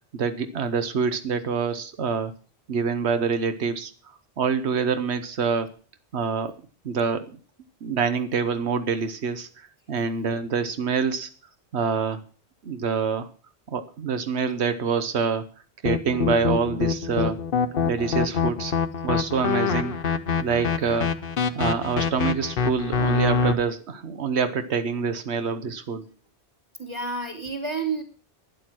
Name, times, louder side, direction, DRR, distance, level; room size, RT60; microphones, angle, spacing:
voice 1, 0.1-2.3 2.7-3.9 4.4-5.7 6.1-6.6 6.8-7.2 7.8-11.3 11.7-12.2 12.6-13.3 13.7-15.5 15.8-17.4 17.8-18.7 19.0-20.0 20.4-21.1 21.5-26.0, right 5 dB, 90° right, 10 dB, 1.2 m, -26 dB
sound 1, 15.8-23.5, left 5 dB, 60° left, 1.0 m, -25 dB
voice 2, 26.8-28.0, right 4 dB, 25° right, 3 dB, 3.3 m, -30 dB
12.0 x 10.5 x 6.1 m, 0.38 s
omnidirectional pair, 1.1 m